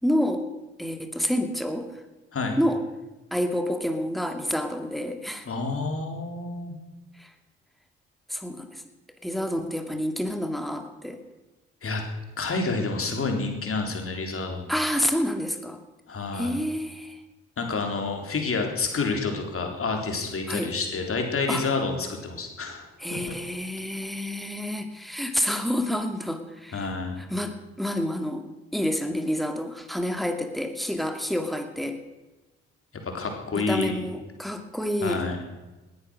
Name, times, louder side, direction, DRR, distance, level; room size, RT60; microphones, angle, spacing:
voice 1, 0.0-0.5 0.8-2.0 2.6-2.8 3.3-5.5 7.2-7.3 8.3-8.8 9.2-11.2 14.7-15.8 16.3-17.2 20.5-20.7 21.5-21.7 23.0-26.9 27.2-28.5 28.7-32.0 33.5-35.2, equal, ahead, 7 dB, 2.4 m, -28 dB
voice 2, 5.4-6.8 11.8-12.0 12.4-14.7 16.1-16.5 17.6-23.2 26.7-27.2 33.0-34.0 35.0-35.4, left 3 dB, 45° left, 3 dB, 4.0 m, -29 dB
19.0 x 10.5 x 6.5 m, 1.1 s
hypercardioid pair, 45°, 31 cm